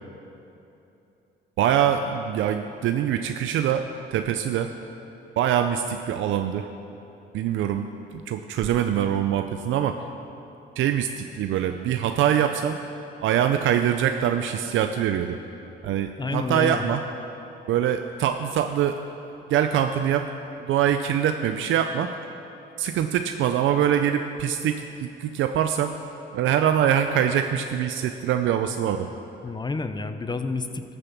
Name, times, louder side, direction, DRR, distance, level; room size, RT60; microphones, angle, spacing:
voice 1, 1.6-3.8 4.1-4.7 5.4-6.7 7.3-10.0 10.8-12.8 13.2-15.4 15.8-17.0 17.7-19.0 19.5-20.3 20.6-22.1 22.8-25.9 26.3-29.1, right 9 dB, 80° right, 7 dB, 0.5 m, -24 dB
voice 2, 16.2-16.9 29.4-30.8, left 4 dB, 20° left, 9 dB, 0.6 m, -29 dB
13.0 x 6.8 x 7.1 m, 2.9 s
cardioid pair, 90°, 20 cm